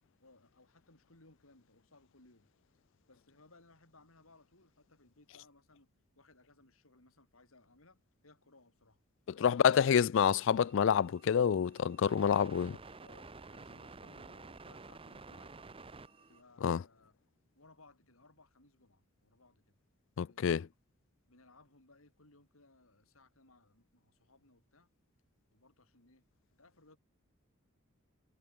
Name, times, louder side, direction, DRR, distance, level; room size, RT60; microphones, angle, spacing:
voice 1, 0.2-2.5 3.1-5.9 6.2-9.0 12.3-15.5 16.3-17.1 17.5-19.8 20.2-20.7 21.3-24.9 25.5-26.3 26.6-27.0, left 2 dB, 85° left, 5.6 m, -63 dB
voice 2, 9.4-12.7 16.6-16.8 20.2-20.6, left 7 dB, 65° left, 0.4 m, -27 dB
sound 1, 10.2-16.4, right 3 dB, 25° right, 0.9 m, -52 dB
head